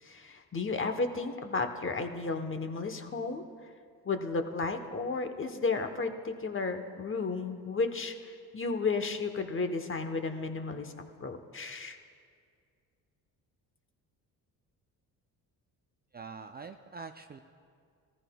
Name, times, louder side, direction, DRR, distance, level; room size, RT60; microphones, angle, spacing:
voice 1, 0.0-3.4 4.0-10.9 11.2-12.0, left 4 dB, 30° left, 7 dB, 1.0 m, -33 dB
voice 2, 16.1-17.4, right 4 dB, 25° right, 7 dB, 0.4 m, -44 dB
16.5 x 14.5 x 2.3 m, 2.2 s
supercardioid pair, 70°, 40 cm